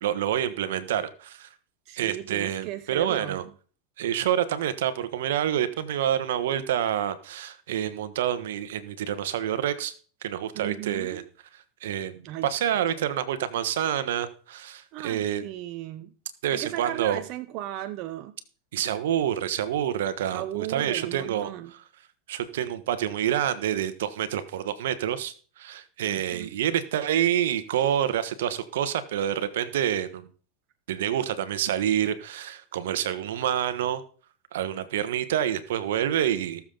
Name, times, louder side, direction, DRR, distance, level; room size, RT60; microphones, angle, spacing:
voice 1, 0.0-1.5 2.0-3.4 4.0-9.9 10.2-11.2 11.8-15.5 16.4-17.2 18.7-21.5 22.3-30.3 30.9-34.0 34.5-36.6, right 10 dB, 80° right, 1.2 m, -27 dB
voice 2, 1.9-3.4 10.5-11.3 12.2-12.5 13.0-13.1 14.9-16.1 16.5-18.3 20.3-21.7 26.0-26.5, right 14 dB, 50° right, 0.8 m, -36 dB
18.5 x 7.2 x 3.9 m
supercardioid pair, 120°, 0 cm